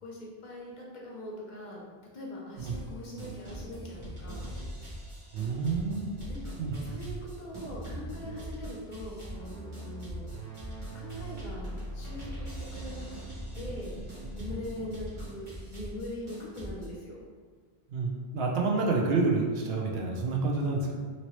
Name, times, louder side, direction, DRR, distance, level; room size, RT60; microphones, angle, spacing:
voice 1, 0.0-1.8 2.1-4.5 6.3-6.5 6.8-10.2 10.9-13.0 13.5-14.0 14.3-17.2, left 1 dB, 55° left, -4 dB, 0.7 m, -42 dB
sound 1, 2.6-2.9 3.2-16.9, right 1 dB, 30° right, 0.8 m, -41 dB
voice 2, 5.3-6.3 6.6-6.8 17.9-21.0, right 3 dB, 75° right, -1 dB, 0.8 m, -28 dB
2.9 x 2.8 x 3.0 m, 1.5 s
omnidirectional pair, 1.0 m